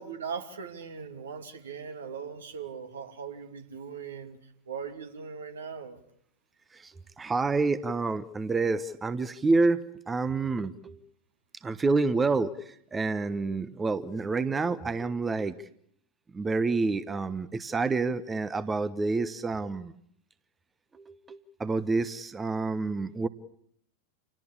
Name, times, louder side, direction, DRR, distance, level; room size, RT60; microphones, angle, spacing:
voice 1, 0.0-4.4 4.7-6.0, right 6 dB, 65° right, 7 dB, 2.7 m, -39 dB
voice 2, 6.7-11.0 11.6-15.6 16.3-19.9 20.9-23.3, right 3 dB, 15° right, 15 dB, 1.0 m, -28 dB
28.5 x 18.5 x 8.7 m, 0.69 s
figure-of-eight pair, 90°, 0 cm